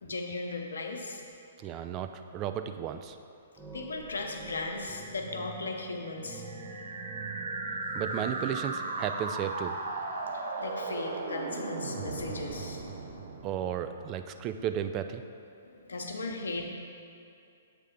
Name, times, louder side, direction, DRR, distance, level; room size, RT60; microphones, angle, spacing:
voice 1, 0.0-1.2 3.7-6.4 10.2-12.8 15.6-16.7, left 3 dB, 80° left, 2 dB, 0.8 m, -37 dB
voice 2, 1.6-3.2 7.9-9.8 13.4-15.2, right 9 dB, 30° right, 8 dB, 0.3 m, -34 dB
sound 1, 2.9-3.3 3.6-10.3, right 3 dB, 15° right, 0.8 m, -46 dB
sound 2, 6.5-14.4, right 3 dB, 65° right, 0.7 m, -36 dB
7.6 x 3.3 x 5.1 m, 2.5 s
hypercardioid pair, 125°, 0 cm